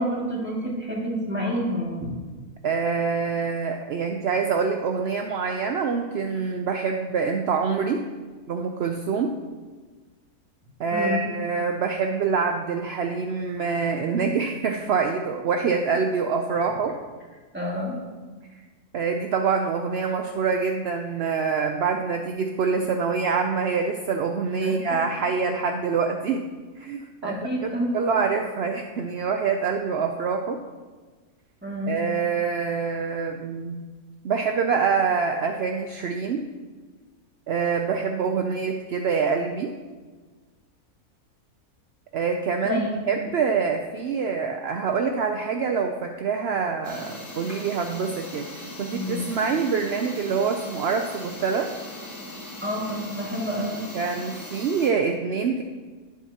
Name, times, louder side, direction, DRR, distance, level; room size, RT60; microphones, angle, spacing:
voice 1, 0.0-2.1 10.9-11.2 17.5-18.0 24.6-25.0 27.2-28.1 31.6-32.0 42.6-42.9 48.9-49.2 52.6-53.8, equal, 5° right, -4 dB, 2.0 m, -28 dB
voice 2, 2.6-8.0 8.5-9.4 10.8-17.0 18.5-18.6 18.9-26.4 26.8-27.3 27.9-30.6 31.9-33.8 34.2-36.5 37.5-39.7 42.1-42.8 43.1-51.7 53.9-55.6, right 5 dB, 65° right, 4 dB, 0.6 m, -25 dB
sound 1, 46.8-54.9, left 1 dB, 90° left, 2.4 m, -39 dB
11.5 x 10.0 x 2.9 m, 1.4 s
omnidirectional pair, 1.6 m